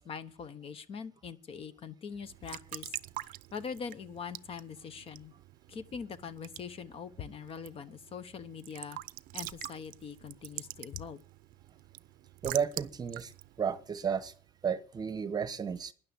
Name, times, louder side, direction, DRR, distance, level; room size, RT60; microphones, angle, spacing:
voice 1, 0.0-3.0 3.5-5.3 5.7-9.0 9.3-11.2, left 6 dB, 35° left, 13 dB, 1.0 m, -42 dB
Raindrop / Drip / Trickle dribble, 2.2-14.7, right 16 dB, 60° right, 0.6 m, -46 dB
voice 2, 12.4-13.3 13.6-14.3 14.6-15.9, right 7 dB, 25° right, 14 dB, 1.0 m, -32 dB
12.5 x 10.5 x 7.0 m, 0.42 s
cardioid pair, 155°, 16 cm